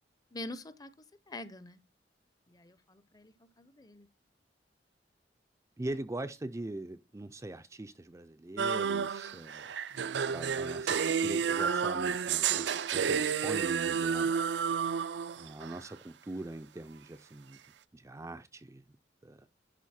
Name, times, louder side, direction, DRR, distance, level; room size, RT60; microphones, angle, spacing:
voice 1, 0.3-0.9 1.3-1.8 2.5-4.1, left 2 dB, 20° left, 0.7 m, -45 dB
voice 2, 5.8-9.7 10.3-14.3 15.4-17.6 17.9-18.8 19.2-19.5, right 2 dB, 15° right, 0.4 m, -42 dB
sound 1, 8.6-15.8, right 6 dB, 70° right, 0.5 m, -31 dB
11.0 x 3.9 x 4.2 m
head